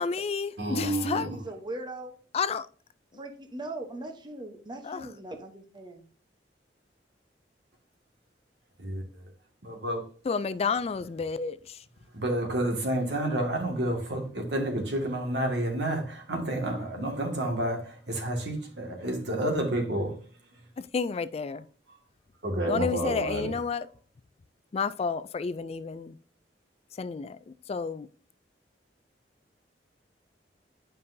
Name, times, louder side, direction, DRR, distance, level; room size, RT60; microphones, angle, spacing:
voice 1, 0.0-1.3 2.3-2.7 4.8-5.1 10.2-11.8 20.8-21.7 22.7-23.9 24.7-26.2 26.9-28.1, left 5 dB, 35° left, 0.3 m, -31 dB
voice 2, 0.6-1.3 9.6-10.0 12.1-20.1 22.4-23.5, right 1 dB, 75° right, 2.0 m, -29 dB
voice 3, 1.3-2.1 3.2-6.1, right 2 dB, 25° right, 0.9 m, -40 dB
9.8 x 5.4 x 2.7 m
head